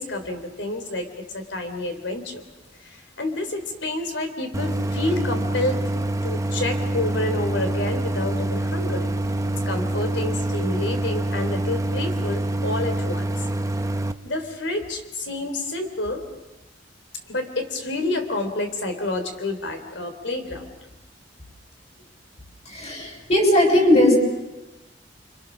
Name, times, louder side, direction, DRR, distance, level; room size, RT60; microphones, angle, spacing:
voice 1, 0.0-2.4 2.8-5.8 6.2-9.1 9.7-13.3 14.2-16.2 17.3-20.8, left 2 dB, 80° left, 6 dB, 3.5 m, -29 dB
Idling, 4.5-14.1, right 1 dB, 20° right, 0.8 m, -26 dB
voice 2, 22.6-24.2, left 1 dB, 40° left, 2 dB, 6.5 m, -18 dB
29.5 x 25.5 x 6.3 m, 1.0 s
head